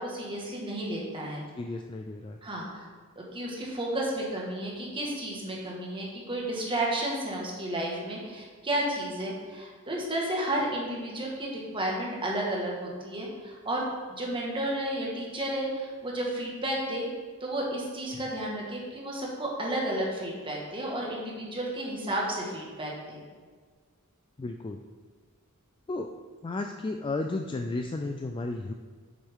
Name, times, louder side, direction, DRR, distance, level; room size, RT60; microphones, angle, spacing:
voice 1, 0.0-1.4 2.4-2.8 3.1-17.1 17.4-23.2, right 1 dB, 25° right, -3 dB, 1.7 m, -32 dB
voice 2, 1.6-2.4 24.4-24.8 25.9-26.1 26.4-28.7, left 2 dB, 20° left, 4 dB, 0.3 m, -33 dB
7.8 x 7.2 x 3.7 m, 1.5 s
head